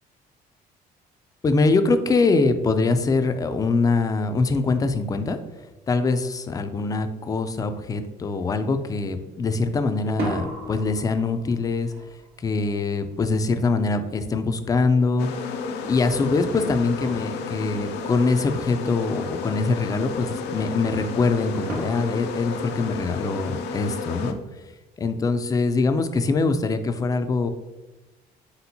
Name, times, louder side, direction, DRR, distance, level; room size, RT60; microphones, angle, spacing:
voice 1, 1.4-5.4 5.9-11.9 12.4-15.5 15.8-24.4 25.0-27.5, left 3 dB, 20° left, 9 dB, 0.3 m, -23 dB
sound 1, 8.0-8.5 10.0-14.8 16.5-16.6 17.0-17.9 21.7-23.4, right 2 dB, 65° right, 1.1 m, -37 dB
sound 2, 15.2-24.3, left 4 dB, 85° left, 0.5 m, -32 dB
4.3 x 3.7 x 2.7 m, 1.1 s
cardioid pair, 110°, 17 cm